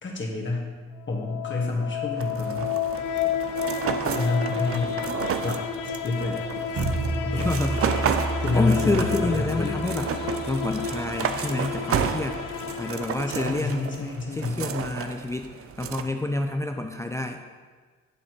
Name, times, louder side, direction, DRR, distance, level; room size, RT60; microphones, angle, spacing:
voice 1, 0.0-0.7 1.1-2.7 4.0-5.0 5.4-6.5 6.7-6.9 7.3-7.5 8.4-9.8 13.3-14.6, left 3 dB, 40° left, -2 dB, 1.6 m, -28 dB
sound 1, 1.0-14.0, left 7 dB, 85° left, 0.5 m, -32 dB
sound 2, 2.2-16.0, right 7 dB, 45° right, 0.5 m, -32 dB
sound 3, 6.8-11.8, right 2 dB, 65° right, 1.2 m, -32 dB
voice 2, 7.2-7.8 8.5-12.4 12.8-14.0 14.3-15.5 15.8-17.4, left 2 dB, 10° left, 5 dB, 0.4 m, -28 dB
9.8 x 4.0 x 3.1 m, 1.5 s
supercardioid pair, 50°, 31 cm